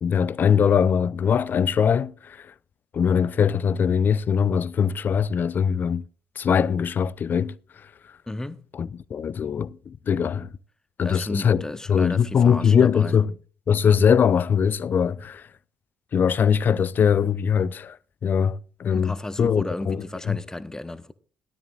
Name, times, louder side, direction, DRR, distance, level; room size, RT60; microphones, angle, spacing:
voice 1, 0.0-2.5 2.9-6.0 6.4-7.6 8.8-10.5 11.0-11.6 11.9-13.3 13.7-15.5 16.1-18.0 18.2-20.4, left 7 dB, 40° left, 0.5 m, -21 dB
voice 2, 8.3-8.7 11.0-13.2 18.9-21.1, left 1 dB, 10° left, 0.9 m, -34 dB
17.0 x 12.5 x 2.5 m
figure-of-eight pair, 50°, 5 cm